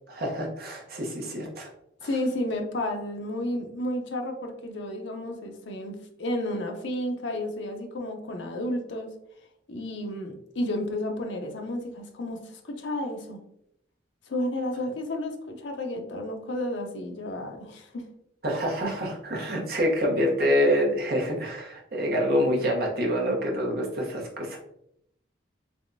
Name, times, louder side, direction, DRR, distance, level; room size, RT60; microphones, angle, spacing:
voice 1, 0.1-1.7 2.0-2.1 18.4-24.6, equal, 55° right, -1 dB, 0.9 m, -26 dB
voice 2, 2.0-9.1 9.7-13.4 14.3-18.1, left 1 dB, 85° left, 3 dB, 0.6 m, -32 dB
3.4 x 3.2 x 2.6 m, 0.75 s
head